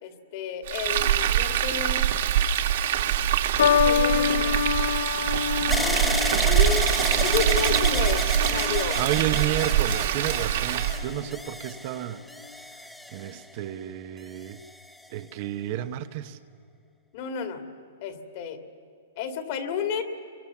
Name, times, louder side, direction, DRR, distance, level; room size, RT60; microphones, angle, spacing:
voice 1, 0.0-2.1 3.6-4.7 5.7-6.9 7.2-9.0 17.1-17.6 18.0-18.6 19.2-20.0, left 6 dB, 40° left, 6 dB, 2.4 m, -31 dB
Frying (food), 0.7-11.0, right 10 dB, 60° right, 1.8 m, -24 dB
sound 1, 3.6-10.1 11.0-11.4, left 8 dB, 75° left, 0.6 m, -28 dB
sound 2, 5.7-13.7 14.4-15.1, left 1 dB, 5° left, 0.6 m, -33 dB
voice 2, 9.0-12.2 13.1-14.6 15.1-16.4, right 13 dB, 40° right, 9 dB, 0.9 m, -31 dB
28.5 x 23.5 x 7.2 m, 2.4 s
hypercardioid pair, 160°, 0 cm